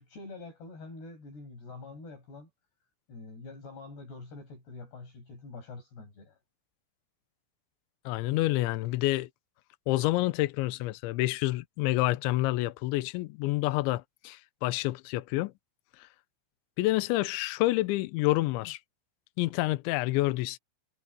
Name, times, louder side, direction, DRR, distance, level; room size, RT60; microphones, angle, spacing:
voice 1, 0.0-2.5 3.1-6.4, left 3 dB, 55° left, 8.7 m, -45 dB
voice 2, 8.1-9.3 9.9-15.5 16.8-18.8 19.4-20.6, left 18 dB, 80° left, 3.0 m, -28 dB
omnidirectional pair, 5.9 m